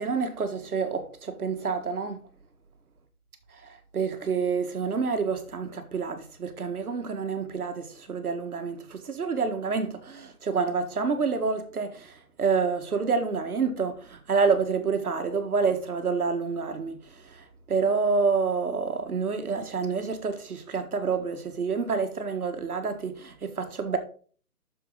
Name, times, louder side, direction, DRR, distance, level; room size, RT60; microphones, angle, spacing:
voice 1, 0.0-2.3 3.6-17.0 17.3-24.0, right 5 dB, 70° right, 1.7 m, -28 dB
7.3 x 6.8 x 3.9 m
hypercardioid pair, 180°, 45 cm